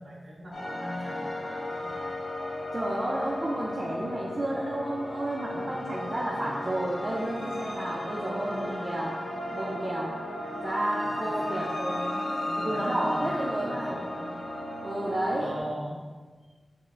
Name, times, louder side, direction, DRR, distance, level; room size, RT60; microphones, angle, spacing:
voice 1, 0.0-1.9 11.0-14.3 15.3-16.0, equal, 60° right, -5 dB, 1.1 m, -40 dB
sound 1, 0.5-15.6, left 1 dB, 80° left, 0.9 m, -35 dB
voice 2, 2.7-9.1 9.5-10.1 10.6-11.8 12.6-14.0 14.8-15.5, right 1 dB, 35° right, -5 dB, 0.6 m, -31 dB
5.5 x 2.1 x 3.8 m, 1.4 s
cardioid pair, 60°, 0 cm